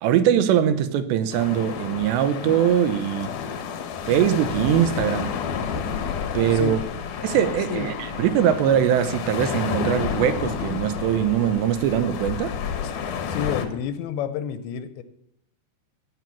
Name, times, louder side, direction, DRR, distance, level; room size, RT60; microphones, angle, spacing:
voice 1, 0.0-3.3 4.1-5.3 6.3-6.8 7.2-12.6, right 10 dB, 85° right, 2.9 m, -22 dB
sound 1, 1.3-13.7, left 7 dB, 75° left, 1.9 m, -30 dB
voice 2, 13.3-15.0, left 9 dB, 90° left, 3.0 m, -29 dB
16.0 x 6.1 x 7.1 m
omnidirectional pair, 5.1 m